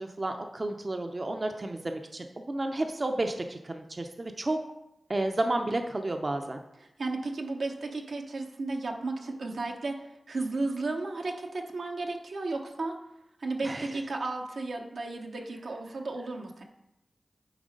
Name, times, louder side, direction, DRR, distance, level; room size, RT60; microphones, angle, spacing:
voice 1, 0.0-4.6 5.1-6.6 13.6-13.9, right 2 dB, 45° right, 5 dB, 0.6 m, -31 dB
voice 2, 7.0-13.0 13.4-16.6, right 3 dB, 80° right, 1 dB, 0.9 m, -34 dB
9.1 x 3.2 x 5.1 m, 0.88 s
cardioid pair, 45°, 0 cm